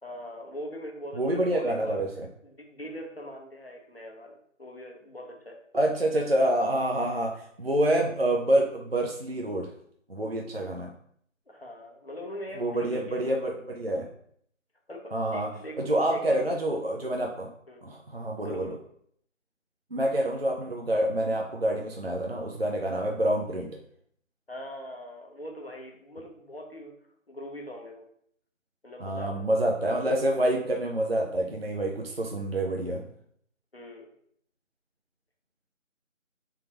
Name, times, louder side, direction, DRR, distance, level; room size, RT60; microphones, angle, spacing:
voice 1, 0.0-2.0 2.4-5.6 11.5-13.3 14.9-16.6 17.7-17.8 18.4-18.8 24.5-26.9 27.3-28.1 28.8-29.9 33.7-34.1, equal, 50° left, 1 dB, 1.0 m, -42 dB
voice 2, 1.2-2.3 5.7-9.7 10.1-10.9 12.6-14.1 15.1-15.5 15.8-17.5 17.8-18.8 19.9-23.7 29.0-33.1, right 1 dB, 50° right, 1 dB, 0.5 m, -27 dB
3.5 x 3.4 x 2.9 m, 0.66 s
figure-of-eight pair, 180°, 39 cm